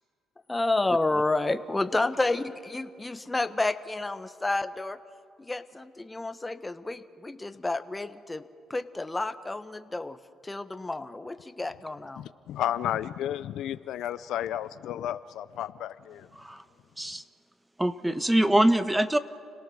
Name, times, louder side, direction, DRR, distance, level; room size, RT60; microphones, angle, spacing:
voice 1, 0.5-5.0 5.4-8.4 8.7-12.2, left 2 dB, 15° left, 11 dB, 1.2 m, -30 dB
voice 2, 12.2-16.3, left 11 dB, 75° left, 14 dB, 0.5 m, -32 dB
voice 3, 17.8-19.2, right 1 dB, 10° right, 12 dB, 1.1 m, -23 dB
30.0 x 18.0 x 6.5 m, 2.4 s
supercardioid pair, 70°, 0 cm